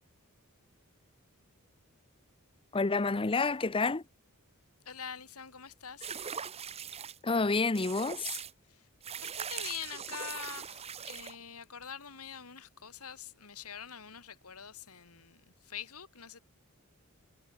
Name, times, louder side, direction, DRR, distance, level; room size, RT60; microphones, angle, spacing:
voice 1, 2.7-4.0 7.2-8.4, left 3 dB, 25° left, 0.7 m, -29 dB
voice 2, 4.8-6.4 8.7-8.9 9.2-16.4, left 8 dB, 85° left, 2.7 m, -45 dB
sound 1, 6.0-7.2 7.8-8.5 9.0-11.4, right 7 dB, 30° right, 0.9 m, -40 dB
head